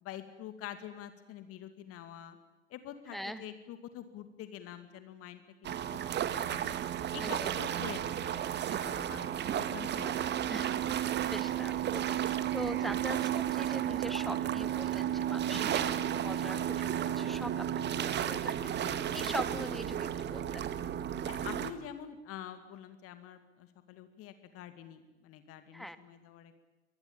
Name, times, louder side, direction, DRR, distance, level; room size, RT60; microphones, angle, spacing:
voice 1, 0.0-2.4 2.7-6.1 6.5-6.8 7.1-8.4 8.7-9.3 9.5-10.3 15.5-16.1 18.8-19.0 21.3-26.5, left 10 dB, 40° left, 11 dB, 2.3 m, -46 dB
voice 2, 3.1-3.4 7.2-7.5 10.5-17.6 17.9-20.8 25.7-26.0, equal, ahead, 13 dB, 1.8 m, -42 dB
sound 1, 5.6-21.7, right 10 dB, 30° right, 1.8 m, -33 dB
24.5 x 20.5 x 8.8 m, 1.1 s
figure-of-eight pair, 85°, 35 cm